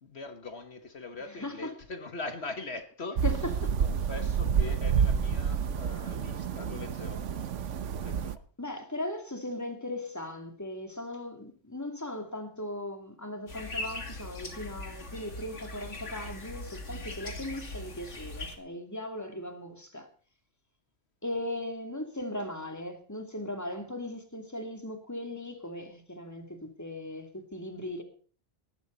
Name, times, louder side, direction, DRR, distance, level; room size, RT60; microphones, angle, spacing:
voice 1, 0.0-3.2 3.8-7.3 7.9-8.4, left 3 dB, 65° left, 1.7 m, -41 dB
voice 2, 1.4-1.7 3.2-3.5 8.6-20.1 21.2-28.0, left 1 dB, 15° left, 2.7 m, -38 dB
sound 1, 3.2-8.4, right 7 dB, 90° right, 1.2 m, -29 dB
sound 2, 13.5-18.6, left 2 dB, 90° left, 3.1 m, -40 dB
19.0 x 12.0 x 4.0 m
omnidirectional pair, 1.2 m